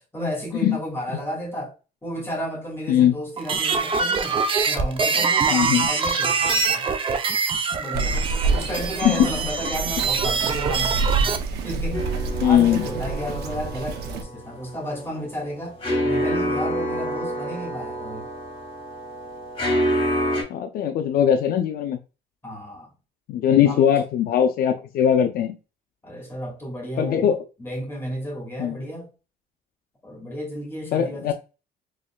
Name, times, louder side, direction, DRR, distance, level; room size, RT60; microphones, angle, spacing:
voice 1, 0.0-1.7 2.0-6.9 7.8-11.4 11.6-12.1 12.4-18.3 22.4-22.9 23.7-23.8 26.0-27.3 27.6-29.1 30.0-31.3, equal, 15° left, 2.0 m, -33 dB
sound 1, 3.4-11.4, right 5 dB, 30° right, 0.6 m, -24 dB
voice 2, 5.5-5.9 9.0-9.3 12.4-12.9 20.5-22.0 23.3-25.6 27.0-27.4 28.6-28.8 30.9-31.3, left 9 dB, 65° left, 0.4 m, -20 dB
Bird vocalization bird call bird song, 7.9-14.2, right 4 dB, 75° right, 0.7 m, -28 dB
sound 2, 11.9-20.4, equal, 30° left, 1.9 m, -28 dB
4.1 x 3.0 x 2.3 m
cardioid pair, 110°, 17 cm